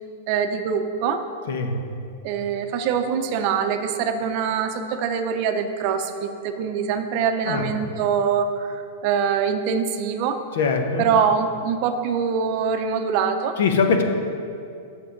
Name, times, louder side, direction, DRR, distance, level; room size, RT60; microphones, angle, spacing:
voice 1, 0.3-1.2 2.2-10.4 11.0-13.6, right 6 dB, 40° right, 7 dB, 0.6 m, -24 dB
voice 2, 10.5-11.1 13.6-14.0, left 5 dB, 70° left, 5 dB, 1.1 m, -21 dB
7.6 x 6.7 x 5.9 m, 2.5 s
supercardioid pair, 155°, 0 cm